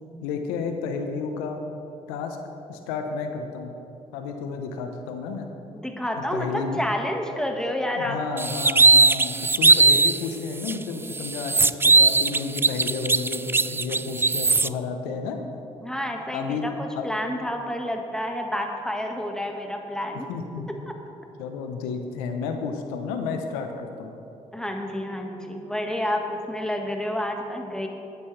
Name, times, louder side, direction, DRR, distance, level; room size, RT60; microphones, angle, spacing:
voice 1, 0.2-1.6 2.1-2.4 2.7-3.7 4.1-5.5 6.3-6.8 8.0-15.4 16.3-16.7 17.0-17.1 20.3-20.7 21.4-24.1, left 5 dB, 85° left, 5 dB, 1.0 m, -31 dB
voice 2, 5.7-8.5 15.8-20.3 24.5-27.9, left 1 dB, 5° left, 2 dB, 1.8 m, -29 dB
sound 1, 8.4-10.2 10.6-10.7 11.1-14.7, right 3 dB, 15° right, 0.3 m, -19 dB
17.0 x 9.8 x 3.4 m, 2.8 s
hypercardioid pair, 50°, 15 cm